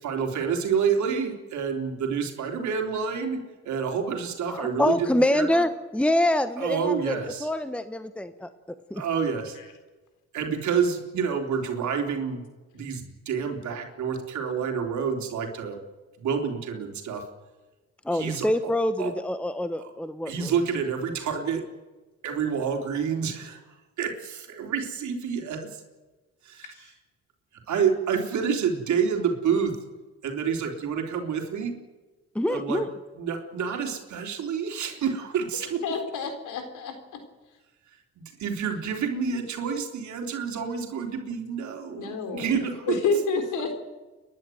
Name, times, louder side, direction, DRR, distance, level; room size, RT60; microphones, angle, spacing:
voice 1, 0.0-5.6 6.6-7.5 8.9-9.6 10.3-12.4 12.7-15.8 16.2-17.2 18.1-18.7 19.0-19.1 19.8-19.9 20.3-21.6 22.2-23.6 24.0-25.8 27.7-29.7 30.2-31.7 32.5-32.8 33.1-35.8 38.4-43.0, right 6 dB, 70° right, 3 dB, 3.6 m, -28 dB
voice 2, 4.5-7.2 7.4-8.5 8.9-9.0 18.0-20.5 32.3-32.9, left 1 dB, 5° left, 11 dB, 1.0 m, -25 dB
voice 3, 35.8-37.0 42.0-42.6 42.9-43.8, left 4 dB, 80° left, 7 dB, 3.9 m, -28 dB
30.0 x 11.5 x 9.3 m, 1.2 s
cardioid pair, 90°, 30 cm